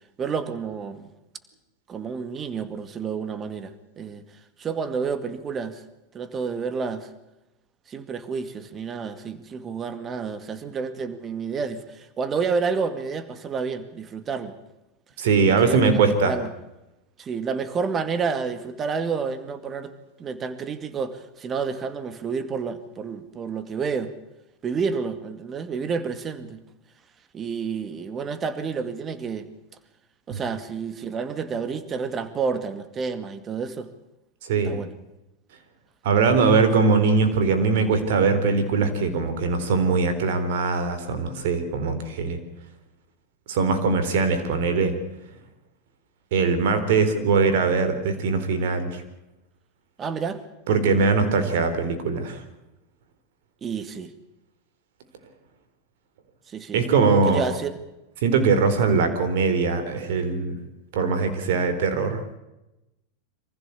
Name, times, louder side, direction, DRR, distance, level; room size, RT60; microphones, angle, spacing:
voice 1, 0.2-1.1 1.9-4.2 4.6-5.8 6.1-7.1 7.9-14.6 15.5-16.5 17.2-19.9 20.2-24.1 24.6-26.6 27.3-29.5 30.3-33.9 34.6-34.9 50.0-50.4 53.6-54.1 56.5-56.8 57.3-57.8, right 5 dB, 25° right, 12 dB, 2.1 m, -29 dB
voice 2, 15.2-16.4 30.3-30.4 34.4-34.8 36.0-42.4 43.5-44.9 46.3-49.0 50.7-52.4 56.7-57.4 58.2-60.6 60.9-62.2, right 4 dB, 70° right, 9 dB, 4.1 m, -21 dB
24.5 x 15.5 x 8.4 m, 0.95 s
hypercardioid pair, 115°, 0 cm